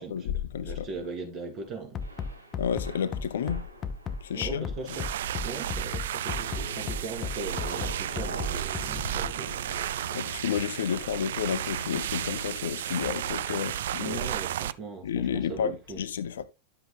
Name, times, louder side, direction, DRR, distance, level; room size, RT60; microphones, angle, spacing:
voice 1, 0.0-1.0 2.6-3.6 4.2-5.0 10.1-14.3 15.0-16.4, left 8 dB, 60° left, 0.8 m, -31 dB
voice 2, 0.6-2.0 4.3-9.6 14.0-16.0, right 3 dB, 35° right, 3.0 m, -39 dB
Bass drum, 1.9-9.3, left 5 dB, 25° left, 0.8 m, -34 dB
Thunder / Rain, 2.0-12.8, right 1 dB, 80° right, 1.5 m, -45 dB
sound 1, 4.8-14.7, right 11 dB, 60° right, 0.3 m, -33 dB
11.0 x 7.8 x 2.2 m
figure-of-eight pair, 90°, 0 cm